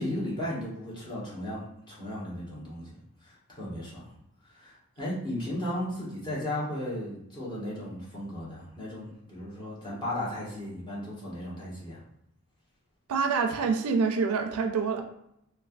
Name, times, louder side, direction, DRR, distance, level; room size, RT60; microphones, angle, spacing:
voice 1, 0.0-4.1 4.5-12.0, left 1 dB, 20° left, -8 dB, 1.0 m, -35 dB
voice 2, 13.1-15.0, right 5 dB, 85° right, 4 dB, 0.4 m, -26 dB
3.1 x 2.2 x 2.4 m, 0.77 s
head